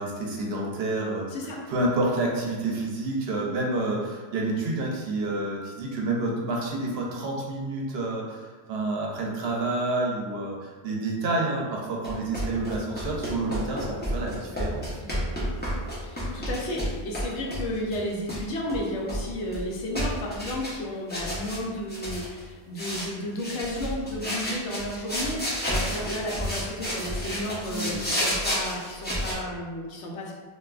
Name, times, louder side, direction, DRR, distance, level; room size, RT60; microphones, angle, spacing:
voice 1, 0.0-1.3 1.7-15.3 27.7-28.0, right 2 dB, 65° right, -2 dB, 0.8 m, -29 dB
sound 1, 12.0-17.3 17.5-18.4 18.7-19.7 19.9-20.8 21.1-21.6 21.9-22.4 22.8-23.1 23.4-29.3, equal, 10° left, 0.6 m, -31 dB
voice 2, 16.0-30.4, left 1 dB, 85° left, -2 dB, 0.9 m, -33 dB
3.3 x 2.5 x 2.3 m, 1.4 s
omnidirectional pair, 1.2 m